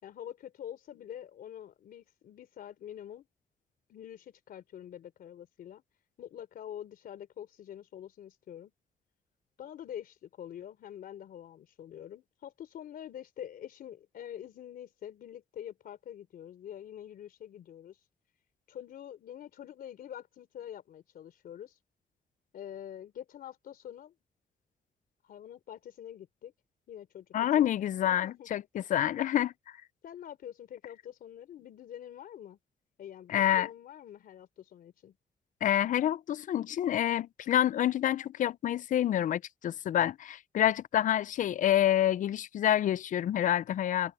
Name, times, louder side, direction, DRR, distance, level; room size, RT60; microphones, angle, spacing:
voice 1, 0.0-3.3 3.9-5.8 6.2-8.7 9.6-18.0 18.7-21.8 22.5-24.1 25.2-26.5 26.9-27.3 27.6-27.7 28.0-28.5 30.0-32.6 33.0-35.2, left 10 dB, 90° left, 3.7 m, -46 dB
voice 2, 27.3-29.5 33.3-33.7 35.6-44.1, left 11 dB, 60° left, 0.4 m, -28 dB
wide cardioid pair, 130°, 15 cm